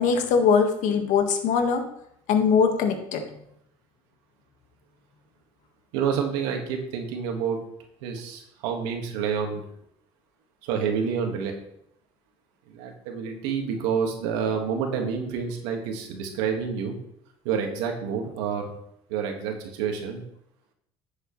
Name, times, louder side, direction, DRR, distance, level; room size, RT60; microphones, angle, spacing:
voice 1, 0.0-1.8 2.3-3.2, left 6 dB, 65° left, 5 dB, 1.6 m, -21 dB
voice 2, 5.9-7.6 8.0-9.6 10.6-11.5 12.7-17.0 17.5-18.7 19.1-20.2, right 6 dB, 90° right, 3 dB, 1.8 m, -28 dB
10.5 x 7.7 x 3.2 m, 0.75 s
supercardioid pair, 110°, 14 cm